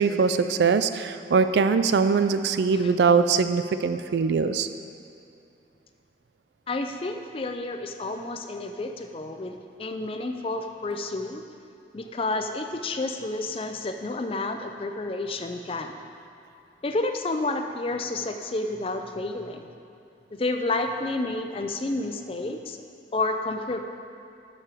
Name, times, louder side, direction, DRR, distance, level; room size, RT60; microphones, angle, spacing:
voice 1, 0.0-4.7, right 5 dB, 70° right, 10 dB, 0.4 m, -22 dB
voice 2, 6.7-11.4 11.9-16.0 16.8-19.7 20.3-22.8 23.1-23.8, left 2 dB, 30° left, 5 dB, 0.4 m, -30 dB
6.8 x 6.0 x 6.1 m, 2.6 s
head